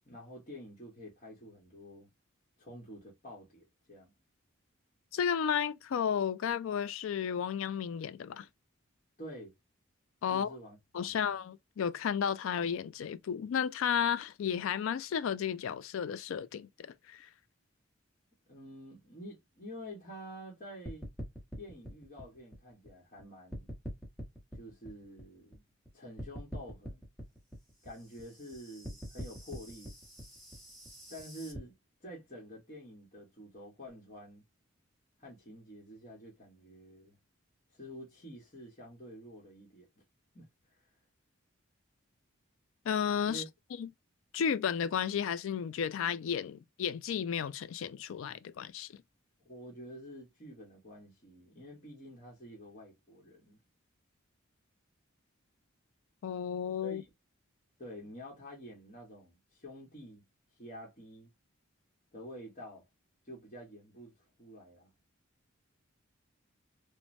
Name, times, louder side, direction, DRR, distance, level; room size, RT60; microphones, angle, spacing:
voice 1, 0.1-2.1 2.6-4.1 9.2-9.5 10.3-10.8 11.0-11.3 18.5-21.1 21.6-23.7 24.5-25.6 25.9-27.0 27.8-29.9 31.1-31.7 32.0-34.4 35.2-37.1 37.7-39.9 40.3-40.5 43.3-43.5 49.4-53.6 56.8-57.0 57.8-60.2 60.6-61.3 62.1-62.8 63.2-64.1 64.4-64.9, equal, 35° left, 1.0 m, -48 dB
voice 2, 5.1-8.5 10.2-10.5 10.9-17.3 42.9-43.4 43.8-43.9 44.3-49.0 56.2-57.0, left 8 dB, 70° left, 0.3 m, -33 dB
sound 1, 20.9-23.2 23.5-25.9 26.2-31.6, equal, ahead, 1.0 m, -44 dB
3.1 x 2.1 x 2.5 m
head